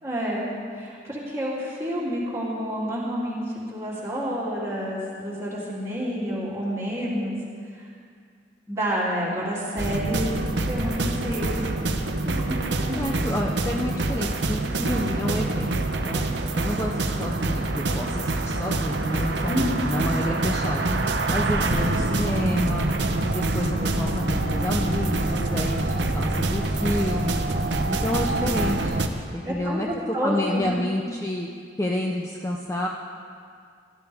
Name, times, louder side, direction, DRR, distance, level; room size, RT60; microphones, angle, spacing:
voice 1, 0.0-0.4 0.7-7.4 7.7-7.9 8.7-10.3 10.7-11.7 12.2-12.6 12.9-13.3 19.5-19.9 29.4-30.8, equal, 15° right, -8 dB, 3.1 m, -29 dB
sound 1, 9.8-29.1, right 2 dB, 75° right, 0.9 m, -25 dB
voice 2, 12.9-15.8 16.1-16.2 16.5-20.9 21.3-22.9 23.2-27.4 27.9-29.0 29.3-29.9 30.2-31.5 31.8-32.9, left 1 dB, 15° left, 0 dB, 0.6 m, -29 dB
19.5 x 12.0 x 3.6 m, 2.2 s
head